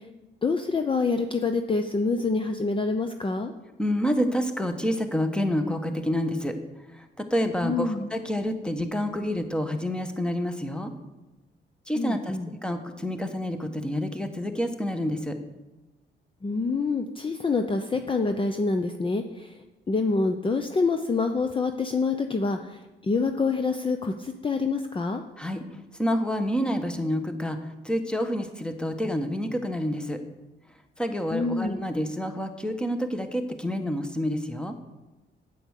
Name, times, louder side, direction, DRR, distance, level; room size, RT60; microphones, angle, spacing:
voice 1, 0.4-3.5 7.6-8.1 12.0-12.5 16.4-19.5 19.9-22.8 23.0-25.2 31.3-31.8, left 4 dB, 25° left, 7 dB, 0.7 m, -26 dB
voice 2, 3.8-6.5 6.9-10.9 11.9-15.4 25.4-25.6 26.0-30.2 31.0-34.7, equal, 5° left, 7 dB, 1.3 m, -28 dB
8.9 x 8.6 x 6.6 m, 1.1 s
cardioid pair, 90°, 20 cm